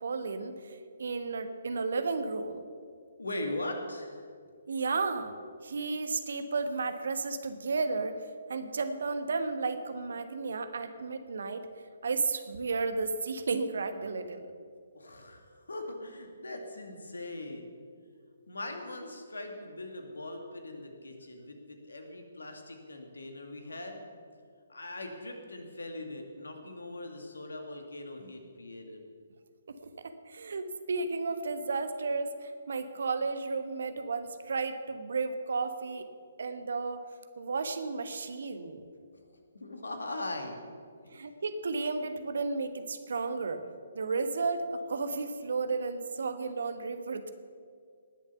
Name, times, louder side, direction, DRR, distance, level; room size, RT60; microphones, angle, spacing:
voice 1, 0.0-2.6 4.7-5.3 5.6-8.1 8.5-11.7 12.0-14.5 30.0-36.1 36.4-37.0 37.4-38.8 41.1-43.6 43.9-47.3, right 4 dB, 60° right, 9 dB, 1.2 m, -33 dB
voice 2, 3.2-4.2 14.9-17.7 18.5-24.0 24.7-29.0 39.1-39.2 39.5-40.7, left 2 dB, 75° left, 4 dB, 2.2 m, -40 dB
19.0 x 7.2 x 6.9 m, 2.1 s
figure-of-eight pair, 135°, 0 cm